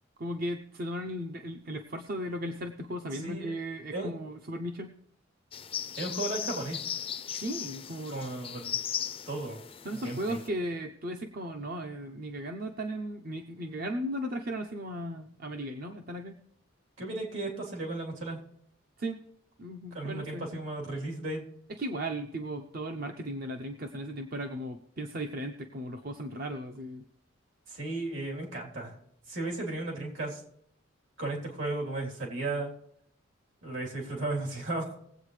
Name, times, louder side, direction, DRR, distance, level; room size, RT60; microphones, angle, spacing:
voice 1, 0.2-5.0 7.3-8.2 9.8-16.4 19.0-19.2 19.6-20.5 21.8-27.0, equal, 45° right, 5 dB, 0.7 m, -36 dB
voice 2, 3.1-3.5 3.9-4.1 6.0-6.9 8.1-8.7 9.3-9.6 9.9-10.4 17.0-18.4 19.9-21.4 27.7-28.9 29.3-30.4 31.2-32.7 33.6-35.0, right 2 dB, 75° right, -1 dB, 3.5 m, -35 dB
sound 1, 5.5-10.5, left 9 dB, 30° left, 0.4 m, -37 dB
20.5 x 8.2 x 3.3 m, 0.72 s
head